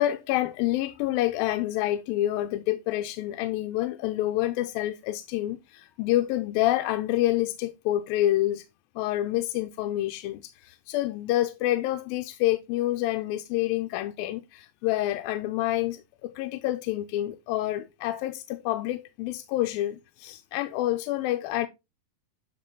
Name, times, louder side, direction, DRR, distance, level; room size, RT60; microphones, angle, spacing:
voice 1, 0.0-8.7 9.0-21.7, left 14 dB, 90° left, 2.5 m, -28 dB
12.0 x 4.4 x 3.9 m
omnidirectional pair, 4.1 m